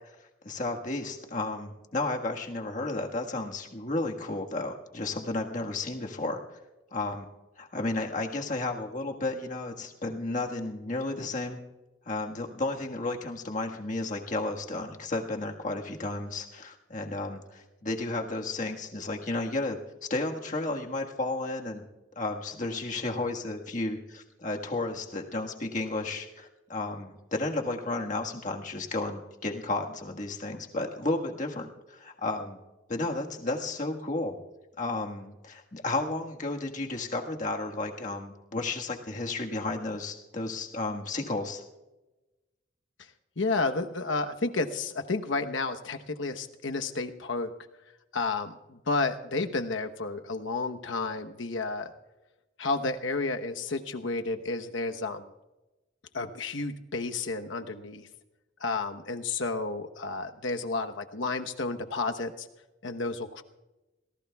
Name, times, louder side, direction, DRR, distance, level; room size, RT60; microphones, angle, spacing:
voice 1, 0.4-6.4 6.9-7.3 7.6-11.6 12.0-19.8 20.1-21.8 22.1-32.6 32.9-34.3 34.8-41.6, left 2 dB, 40° left, 2 dB, 1.5 m, -33 dB
voice 2, 43.4-47.5 48.1-51.9 52.6-55.3 56.1-58.1 58.6-62.5 62.8-63.4, left 3 dB, 75° left, 6 dB, 1.0 m, -31 dB
27.5 x 18.5 x 2.3 m, 1.1 s
head